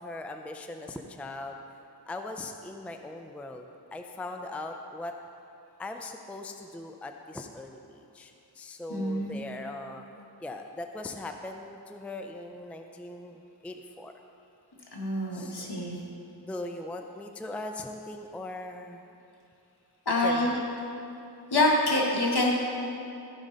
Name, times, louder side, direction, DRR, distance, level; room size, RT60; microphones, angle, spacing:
voice 1, 0.0-1.6 2.1-3.6 3.9-5.1 5.8-10.0 10.4-14.1 15.3-15.8 16.4-19.0 20.2-20.6, left 2 dB, 5° left, 5 dB, 0.4 m, -40 dB
voice 2, 8.9-9.4 14.9-16.0 20.0-20.6 21.5-22.5, left 1 dB, 65° left, -3 dB, 1.6 m, -26 dB
14.5 x 5.2 x 4.0 m, 2.7 s
wide cardioid pair, 70°, 42 cm